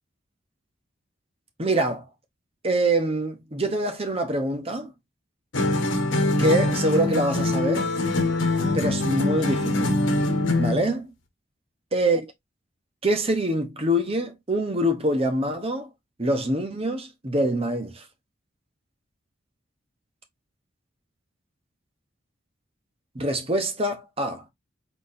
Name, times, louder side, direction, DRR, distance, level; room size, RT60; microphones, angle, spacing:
voice 1, 1.6-2.0 2.6-4.9 6.4-7.9 8.7-10.0 10.6-11.1 11.9-12.3 13.0-15.9 16.2-18.0 23.1-24.4, right 1 dB, 30° right, 1.0 m, -25 dB
sound 1, 5.5-10.9, left 2 dB, 80° left, 1.1 m, -23 dB
4.5 x 4.0 x 2.7 m
head